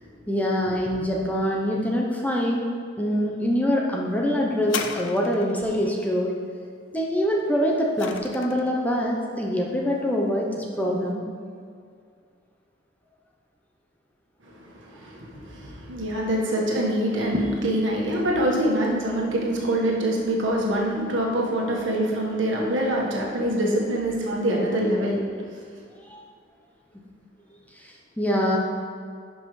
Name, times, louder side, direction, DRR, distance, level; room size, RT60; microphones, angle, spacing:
voice 1, 0.3-2.6 3.0-6.3 6.9-11.3 26.1-26.2 27.8-28.6, equal, 10° left, -2 dB, 0.7 m, -24 dB
sound 1, 4.6-5.7 7.4-8.8 9.6-9.7, left 6 dB, 85° left, 0.5 m, -35 dB
voice 2, 14.4-25.3, right 1 dB, 80° right, -3 dB, 1.4 m, -25 dB
11.0 x 5.4 x 3.2 m, 2.2 s
head